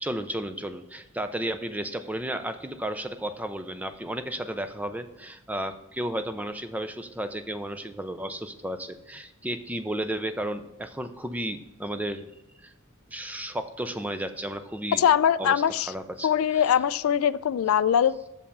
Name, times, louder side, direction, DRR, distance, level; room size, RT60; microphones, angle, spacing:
voice 1, 0.0-12.3 12.6-12.7 13.1-15.0 15.4-15.6 15.9-16.3, right 1 dB, 5° right, 9 dB, 0.4 m, -33 dB
voice 2, 14.9-15.9 16.2-18.1, left 9 dB, 70° left, 17 dB, 0.3 m, -22 dB
7.0 x 5.4 x 6.6 m, 0.94 s
head